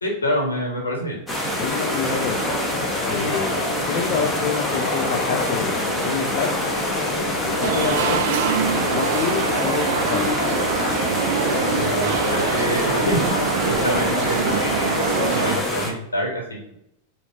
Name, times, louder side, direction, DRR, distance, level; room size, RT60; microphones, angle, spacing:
voice 1, 0.0-1.2 11.7-13.2 13.7-14.9 15.3-16.7, equal, 80° left, -1 dB, 1.6 m, -26 dB
sound 1, 1.3-15.9, equal, 10° left, 1.1 m, -26 dB
voice 2, 1.6-2.6 3.1-3.6 3.9-5.7 6.0-6.5 7.4-8.3 8.6-9.8 10.1-10.4, left 6 dB, 45° left, 1 dB, 0.6 m, -27 dB
sound 2, 1.8-15.6, left 4 dB, 65° left, 1.0 m, -28 dB
sound 3, 7.6-15.6, right 10 dB, 55° right, 0.4 m, -25 dB
7.0 x 2.9 x 2.6 m, 0.80 s
figure-of-eight pair, 90°, 0 cm